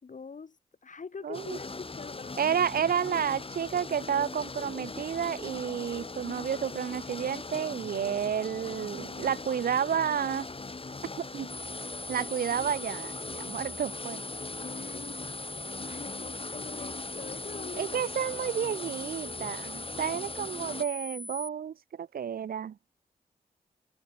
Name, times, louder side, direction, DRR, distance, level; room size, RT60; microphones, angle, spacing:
voice 1, 0.0-2.4 14.6-15.2 15.8-18.0 20.0-20.2, left 5 dB, 55° left, 5.4 m, -44 dB
voice 2, 1.2-1.6 2.4-10.5 11.2-11.5 12.1-14.2 17.8-22.8, right 8 dB, 70° right, 1.1 m, -31 dB
sound 1, 1.3-20.8, left 3 dB, 35° left, 3.9 m, -40 dB
sound 2, 11.5-21.5, left 1 dB, 15° left, 1.3 m, -41 dB
supercardioid pair, 45°, 16 cm